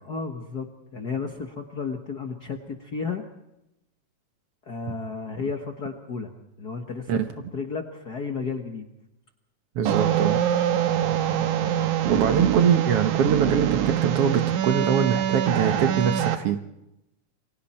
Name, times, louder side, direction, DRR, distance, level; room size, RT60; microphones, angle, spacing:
voice 1, 0.0-3.2 4.7-6.3 6.6-7.2 7.5-8.9 11.0-11.6, left 5 dB, 45° left, 4 dB, 1.4 m, -33 dB
voice 2, 9.8-10.4 12.1-16.6, right 7 dB, 60° right, 7 dB, 1.9 m, -23 dB
sound 1, 9.9-16.4, right 10 dB, 90° right, 2.7 m, -24 dB
28.0 x 23.5 x 4.4 m, 0.87 s
omnidirectional pair, 3.4 m